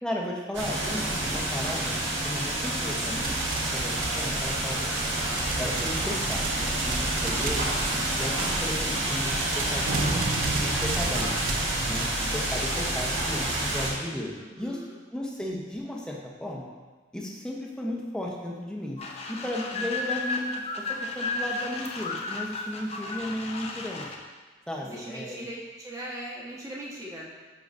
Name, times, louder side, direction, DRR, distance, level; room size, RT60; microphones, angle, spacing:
voice 1, 0.0-1.9 2.2-3.4 3.7-5.1 5.6-10.2 10.5-11.3 11.9-12.1 12.3-14.8 15.1-16.6 17.1-19.0 19.3-20.5 20.9-24.1 24.7-25.5, left 1 dB, 5° left, -2 dB, 0.9 m, -35 dB
sound 1, 0.5-13.9, right 1 dB, 75° right, 1.6 m, -28 dB
sound 2, 3.2-12.1, right 3 dB, 50° right, 0.4 m, -34 dB
voice 2, 14.4-15.0 24.8-27.3, right 1 dB, 20° right, -5 dB, 1.3 m, -40 dB
sound 3, 19.0-24.2, left 3 dB, 35° left, 0.6 m, -33 dB
10.5 x 4.7 x 2.6 m, 1.4 s
head